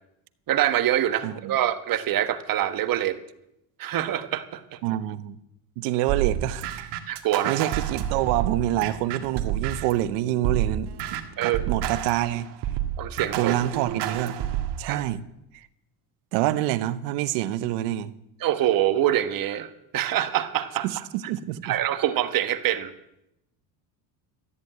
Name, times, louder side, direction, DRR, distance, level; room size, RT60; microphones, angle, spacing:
voice 1, 0.5-3.2 3.8-4.8 7.1-7.6 11.4-11.7 13.0-13.5 14.9-15.0 18.4-21.0 21.6-22.9, right 12 dB, 50° right, 1.5 m, -25 dB
voice 2, 1.2-1.6 4.8-5.4 5.8-6.7 7.5-12.5 13.3-14.3 14.8-15.2 15.5-15.7 16.3-18.1 20.8-21.8, right 14 dB, 85° right, 1.0 m, -27 dB
sound 1, 6.1-10.0 10.4-14.8, right 10 dB, 65° right, 2.0 m, -29 dB
14.0 x 9.7 x 8.9 m
supercardioid pair, 110°, 43 cm